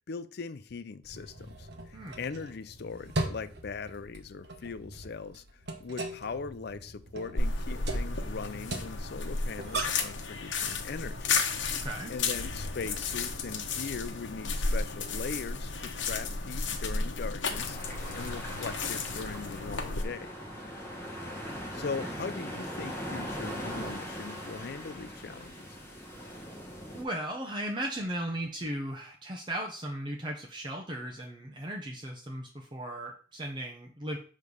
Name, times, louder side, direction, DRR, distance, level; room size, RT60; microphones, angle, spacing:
voice 1, 0.1-5.4 5.8-11.5 12.1-17.8 18.1-20.3 21.7-25.7, left 5 dB, 60° left, 0.5 m, -40 dB
sound 1, 1.0-10.2, right 2 dB, 60° right, 1.1 m, -39 dB
sound 2, 7.4-20.0, left 4 dB, 75° left, 1.0 m, -33 dB
voice 2, 11.8-12.1 22.0-22.1 26.9-34.2, right 1 dB, 25° right, 0.8 m, -36 dB
sound 3, 17.5-27.0, equal, 15° left, 1.4 m, -40 dB
6.6 x 3.2 x 5.4 m
head